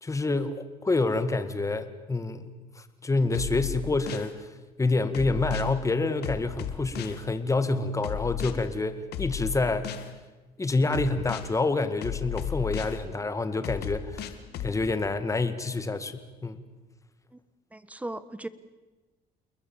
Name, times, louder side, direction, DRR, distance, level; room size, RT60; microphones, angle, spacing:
voice 1, 0.0-4.5 4.8-9.9 10.6-14.3 14.6-16.6, left 3 dB, 20° left, 11 dB, 1.9 m, -27 dB
sound 1, 3.3-4.3 5.1-5.7 6.2-7.2 8.0-8.5 9.1-10.1 10.9-11.5 12.0-13.0 13.6-14.7, left 10 dB, 70° left, 2.1 m, -34 dB
voice 2, 17.7-18.5, right 1 dB, 10° right, 15 dB, 1.3 m, -38 dB
28.5 x 21.0 x 7.2 m, 1.2 s
cardioid pair, 110°, 17 cm